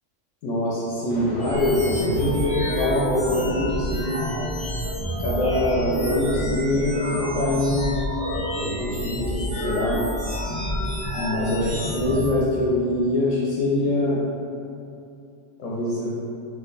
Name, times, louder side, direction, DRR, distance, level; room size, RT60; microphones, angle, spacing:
voice 1, 0.4-4.2 5.2-8.0 8.6-10.1 11.1-14.2 15.6-16.2, left 1 dB, 85° left, -6 dB, 0.9 m, -24 dB
Thunder, 1.1-3.6, left 1 dB, 60° left, 0.5 m, -35 dB
sound 1, 1.4-12.3, equal, 10° left, 0.4 m, -29 dB
2.8 x 2.2 x 3.8 m, 2.6 s
omnidirectional pair, 1.3 m